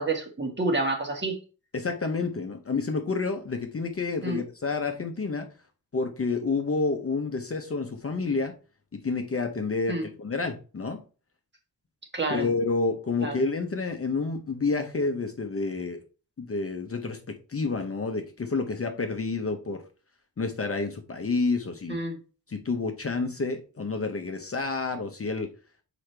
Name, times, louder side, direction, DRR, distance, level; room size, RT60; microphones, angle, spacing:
voice 1, 0.0-1.4 4.2-4.4 9.9-10.1 12.1-12.5 13.2-13.3 21.9-22.2, right 2 dB, 25° right, 2 dB, 1.6 m, -28 dB
voice 2, 1.7-5.5 5.9-8.5 8.9-11.0 12.3-16.0 16.4-19.8 20.4-22.0 22.5-25.5, left 4 dB, 35° left, 5 dB, 0.8 m, -29 dB
6.3 x 4.9 x 3.3 m, 0.35 s
wide cardioid pair, 130°, 40 cm